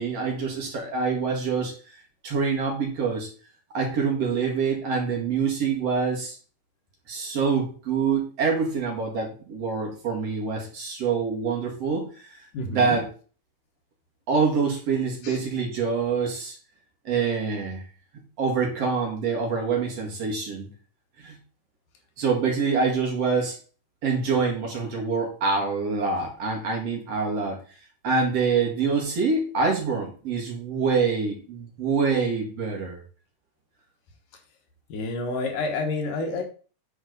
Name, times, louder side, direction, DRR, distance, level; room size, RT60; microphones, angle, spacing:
voice 1, 0.0-2.0 2.2-3.3 3.7-6.4 7.1-12.4 12.7-13.1 14.3-16.6 17.0-17.8 18.4-20.7 21.2-21.4 22.2-23.6 24.0-27.6 28.0-33.0, right 5 dB, 55° right, -1 dB, 3.1 m, -25 dB
voice 2, 12.5-13.0 15.2-15.4 34.9-36.4, left 3 dB, 85° left, 3 dB, 3.1 m, -29 dB
8.8 x 6.2 x 4.0 m, 0.38 s
omnidirectional pair, 3.7 m